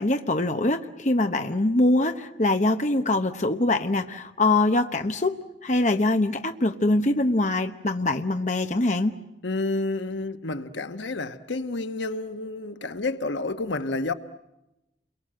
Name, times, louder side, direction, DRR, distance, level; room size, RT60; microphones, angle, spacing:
voice 1, 0.0-9.1, left 2 dB, 40° left, 1.0 m, -23 dB
voice 2, 9.4-14.1, left 2 dB, 90° left, 1.2 m, -30 dB
29.5 x 23.0 x 7.7 m
head